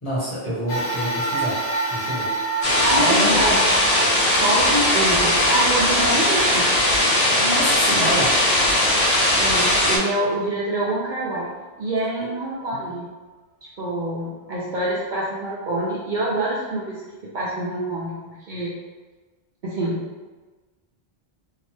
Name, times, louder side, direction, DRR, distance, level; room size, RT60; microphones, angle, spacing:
voice 1, 0.0-1.6 1.9-2.3 3.0-3.5 7.4-8.3 12.7-12.9, equal, 30° left, -9 dB, 1.0 m, -27 dB
sound 1, 0.7-9.3 9.9-10.0 11.1-11.2, right 2 dB, 60° left, 0.7 m, -29 dB
sound 2, 2.6-10.0, left 1 dB, 80° left, 1.0 m, -19 dB
voice 2, 2.8-3.6 4.4-6.7 9.4-11.5 11.8-13.1 13.8-17.0 17.3-18.7 19.6-20.0, right 1 dB, 60° right, -6 dB, 0.6 m, -26 dB
2.7 x 2.0 x 3.2 m, 1.3 s
omnidirectional pair, 1.0 m